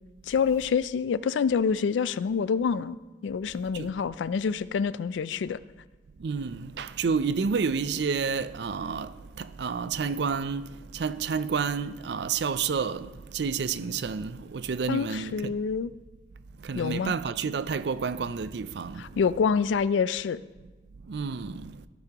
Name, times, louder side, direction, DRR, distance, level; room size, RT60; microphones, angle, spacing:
voice 1, 0.3-3.0 3.2-5.6 14.9-15.9 16.7-17.1 19.0-20.4, left 6 dB, 90° left, 0.3 m, -27 dB
voice 2, 6.2-15.6 16.6-19.0 21.1-21.8, right 5 dB, 70° right, 0.4 m, -30 dB
14.0 x 10.5 x 2.9 m
head